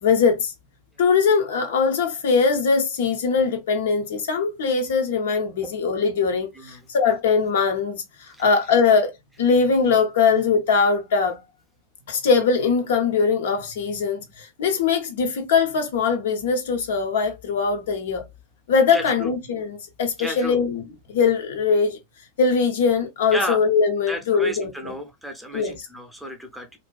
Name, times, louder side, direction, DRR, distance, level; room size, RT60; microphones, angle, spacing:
voice 1, 0.0-0.5 1.0-9.1 9.4-11.4 12.1-18.2 18.7-20.8 21.1-22.0 22.4-24.9 25.5-25.7, left 5 dB, 60° left, 0.5 m, -21 dB
voice 2, 6.5-6.9 8.3-8.5 18.9-19.3 20.2-20.6 23.3-23.6 24.1-26.8, equal, ahead, 0.6 m, -32 dB
2.5 x 2.2 x 2.3 m
figure-of-eight pair, 90°, 0 cm